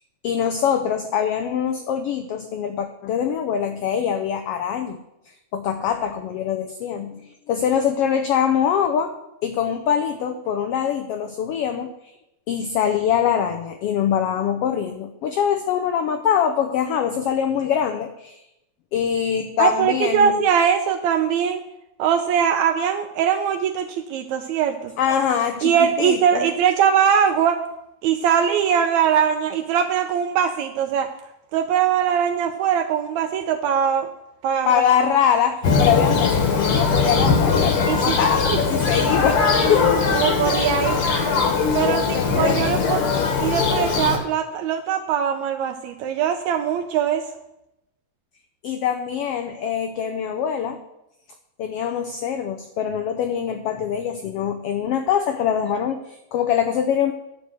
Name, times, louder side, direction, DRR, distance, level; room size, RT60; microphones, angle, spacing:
voice 1, 0.2-5.0 5.5-9.1 9.4-11.9 12.5-18.4 18.9-20.5 25.0-26.5 34.6-39.9 41.8-42.7 48.6-50.8 51.6-57.1, left 8 dB, 85° left, 7 dB, 1.3 m, -23 dB
voice 2, 19.6-21.6 22.0-24.9 25.6-27.6 28.0-31.1 31.5-34.1 34.4-34.7 37.9-38.2 38.5-38.6 40.1-41.1 41.7-43.0 43.4-47.2, right 8 dB, 80° right, 6 dB, 1.8 m, -21 dB
Thunder, 35.6-44.2, left 4 dB, 55° left, 1.8 m, -20 dB
11.0 x 4.6 x 8.2 m, 0.87 s
omnidirectional pair, 3.4 m